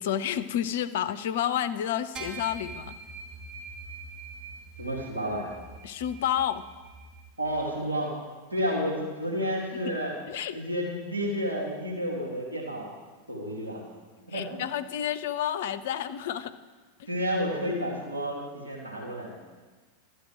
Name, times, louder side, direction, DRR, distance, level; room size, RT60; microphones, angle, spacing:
voice 1, 0.0-3.0 5.8-6.7 10.3-10.6 14.3-16.5 17.0-17.1, left 10 dB, 55° left, 12 dB, 0.5 m, -30 dB
sound 1, 2.2-7.8, right 3 dB, 30° right, 1.9 m, -44 dB
voice 2, 4.8-5.5 7.4-8.1 8.5-10.1 10.5-13.0 13.3-13.8 14.3-14.6 17.1-19.4, equal, 85° right, -4 dB, 2.3 m, -31 dB
12.0 x 7.9 x 5.0 m, 1.3 s
figure-of-eight pair, 90°, 0 cm